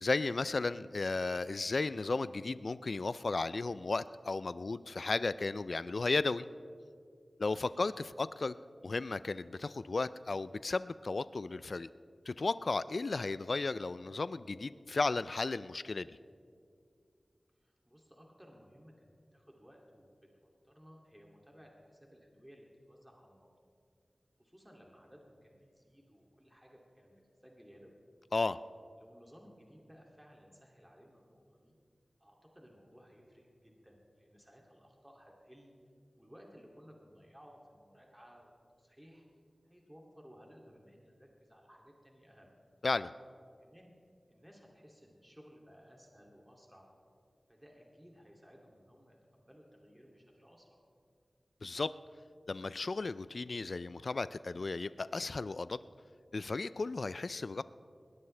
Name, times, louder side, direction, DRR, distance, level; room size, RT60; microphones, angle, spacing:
voice 1, 0.0-6.5 7.4-8.6 8.8-11.9 12.3-16.2 28.3-28.6 42.8-43.1 51.6-51.9 52.5-55.8 56.3-57.6, left 3 dB, 65° left, 15 dB, 0.3 m, -34 dB
voice 2, 7.5-7.9 17.6-20.1 20.4-23.5 24.4-27.1 27.4-28.0 29.0-31.7 32.2-35.7 36.2-38.5 38.8-39.2 39.6-42.6 43.6-43.9 44.3-46.9 47.5-50.8, equal, 10° right, -1 dB, 2.5 m, -59 dB
20.5 x 18.0 x 3.3 m, 2.3 s
wide cardioid pair, 60°, 0 cm